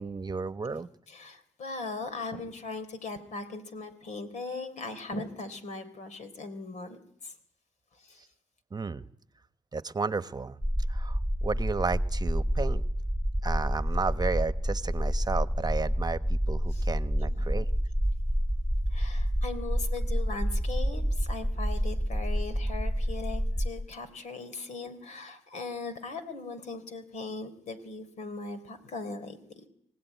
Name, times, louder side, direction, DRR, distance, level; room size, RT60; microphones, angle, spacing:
voice 1, 0.0-0.9 8.7-9.0 9.7-10.6 10.9-12.8 13.4-17.7, right 4 dB, 30° right, 13 dB, 1.1 m, -33 dB
voice 2, 1.1-7.3 8.0-8.2 16.7-16.8 17.4-17.6 18.9-29.5, left 3 dB, 70° left, 10 dB, 3.6 m, -39 dB
sound 1, 10.6-23.7, equal, 10° left, 3.0 m, -28 dB
25.5 x 17.0 x 9.3 m, 0.72 s
cardioid pair, 65°, 13 cm